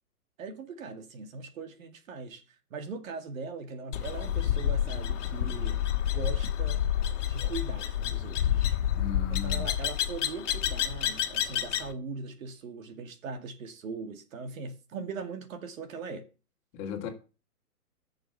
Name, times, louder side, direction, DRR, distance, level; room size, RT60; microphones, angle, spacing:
voice 1, 0.4-2.4 2.7-6.8 7.3-8.8 9.3-16.3, right 4 dB, 60° right, 2.3 m, -40 dB
sound 1, 3.9-11.9, left 10 dB, 50° left, 1.9 m, -29 dB
voice 2, 8.9-9.7 16.7-17.1, left 6 dB, 30° left, 2.6 m, -36 dB
10.5 x 6.7 x 6.8 m
hypercardioid pair, 145°, 46 cm